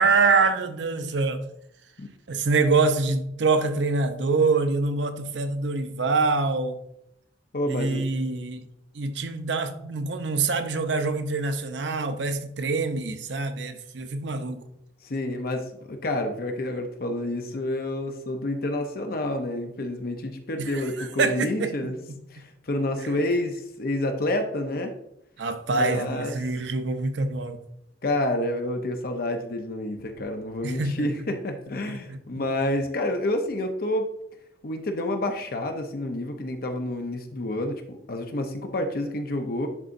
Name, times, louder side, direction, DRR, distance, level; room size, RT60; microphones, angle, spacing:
voice 1, 0.0-1.4 2.3-6.8 7.7-8.6 8.9-14.6 20.6-21.9 23.0-23.1 25.4-27.6 30.6-31.1 32.1-32.2, right 4 dB, 85° right, 0.7 m, -25 dB
voice 2, 7.5-8.0 15.0-22.0 22.3-24.9 25.7-26.3 28.0-34.1 34.6-39.7, left 1 dB, 55° left, 0.7 m, -29 dB
10.5 x 4.0 x 2.6 m
head